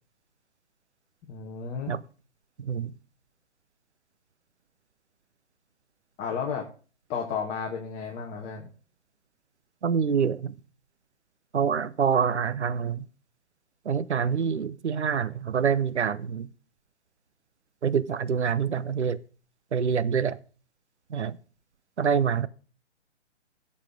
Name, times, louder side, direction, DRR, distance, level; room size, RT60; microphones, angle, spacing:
voice 1, 1.3-2.0 6.2-6.6 7.1-8.7, left 6 dB, 20° left, 1.5 m, -33 dB
voice 2, 2.6-2.9 9.8-10.5 11.5-13.0 13.8-16.5 17.8-19.2 19.7-20.4 21.1-21.4 22.0-22.5, right 7 dB, 70° right, 0.9 m, -26 dB
16.5 x 7.4 x 3.7 m
figure-of-eight pair, 135°, 35 cm